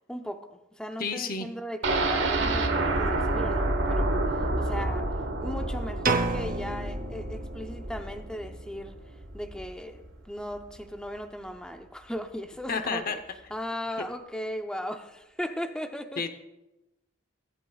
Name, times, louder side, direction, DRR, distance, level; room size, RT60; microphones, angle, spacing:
voice 1, 0.1-5.1 5.4-9.0 9.3-13.2 13.5-16.2, equal, 5° left, 6 dB, 0.6 m, -37 dB
voice 2, 1.0-1.5 12.7-13.2 16.2-16.3, left 5 dB, 45° left, 9 dB, 0.8 m, -30 dB
sound 1, 1.8-9.7 10.1-10.2 10.5-10.6, right 2 dB, 60° right, 1.1 m, -29 dB
sound 2, 6.0-7.9, right 3 dB, 40° right, 0.7 m, -30 dB
23.5 x 8.1 x 2.3 m, 0.95 s
head